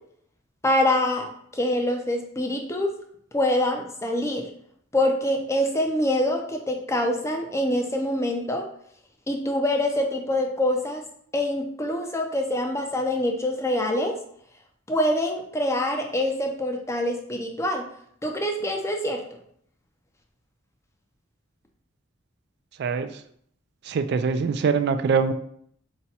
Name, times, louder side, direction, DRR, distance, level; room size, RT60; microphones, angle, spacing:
voice 1, 0.6-2.9 3.3-4.5 4.9-8.7 9.3-11.0 11.3-14.1 14.9-17.9 18.2-19.4, left 1 dB, 15° left, 3 dB, 0.5 m, -25 dB
voice 2, 22.8-23.1 23.9-25.3, right 5 dB, 55° right, 10 dB, 0.3 m, -23 dB
4.1 x 2.2 x 4.1 m, 0.67 s
head